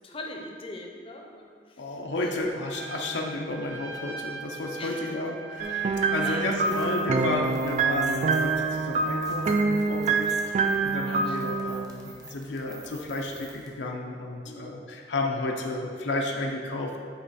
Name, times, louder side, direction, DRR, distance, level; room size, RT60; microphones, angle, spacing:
voice 1, 0.0-2.3 4.8-5.1 6.2-6.6 7.2-7.4 11.1-11.6 14.4-14.7, left 2 dB, 30° left, 1 dB, 0.6 m, -42 dB
voice 2, 1.8-17.0, left 2 dB, 80° left, 0 dB, 0.6 m, -32 dB
Trumpet, 2.7-6.9, right 3 dB, 85° right, 0.6 m, -41 dB
sound 1, 5.6-11.9, right 4 dB, 40° right, 0.3 m, -26 dB
sound 2, 6.5-13.7, right 2 dB, 20° right, 0.7 m, -48 dB
8.9 x 3.2 x 4.1 m, 2.1 s
head